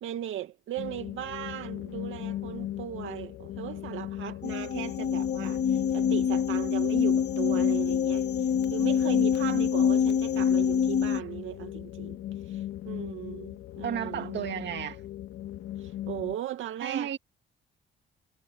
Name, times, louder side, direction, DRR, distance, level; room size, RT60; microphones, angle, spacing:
voice 1, 0.0-12.2 12.5-14.5 15.8-17.2, right 11 dB, 80° right, 2.4 m, -37 dB
sound 1, 0.8-16.4, left 13 dB, 90° left, 2.5 m, -38 dB
sound 2, 4.4-11.2, left 8 dB, 60° left, 1.7 m, -25 dB
voice 2, 13.8-15.0 16.8-17.2, right 9 dB, 65° right, 2.2 m, -33 dB
cardioid pair, 90°, 20 cm